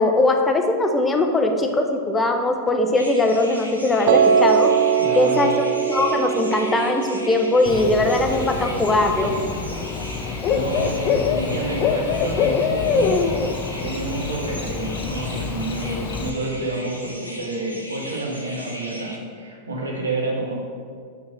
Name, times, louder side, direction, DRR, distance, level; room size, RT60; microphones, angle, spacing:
voice 1, 0.0-4.1 4.4-4.7 5.1-9.3, left 2 dB, 15° left, 4 dB, 0.8 m, -20 dB
sound 1, 3.0-19.2, equal, 85° left, 1.0 m, -38 dB
Piano, 4.1-10.2, right 7 dB, 45° right, 0.5 m, -22 dB
voice 2, 5.0-5.5 10.5-13.3 13.8-20.5, right 2 dB, 70° right, -2 dB, 1.6 m, -29 dB
Bird / Cricket, 7.7-16.3, left 6 dB, 35° left, 0.5 m, -25 dB
5.7 x 5.7 x 6.1 m, 2.1 s
figure-of-eight pair, 90°, 0 cm